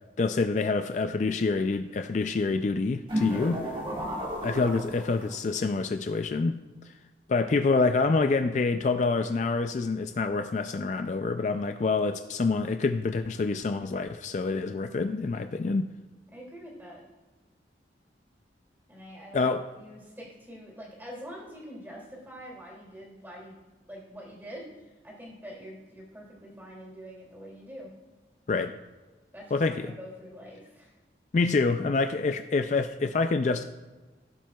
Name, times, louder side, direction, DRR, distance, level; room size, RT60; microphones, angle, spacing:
voice 1, 0.2-3.7 4.4-6.6 6.8-6.9 7.3-15.9 19.3-19.6 28.5-28.7 29.5-29.9 31.3-33.6, left 3 dB, 40° left, 7 dB, 0.3 m, -27 dB
sound 1, 3.1-5.5, equal, 30° right, 1.6 m, -33 dB
voice 2, 3.9-4.3 7.3-7.5 16.3-17.0 18.9-19.5 19.7-23.6 23.9-27.9 29.3-30.9, equal, 10° right, -3 dB, 2.5 m, -45 dB
15.5 x 7.4 x 2.3 m, 1.2 s
head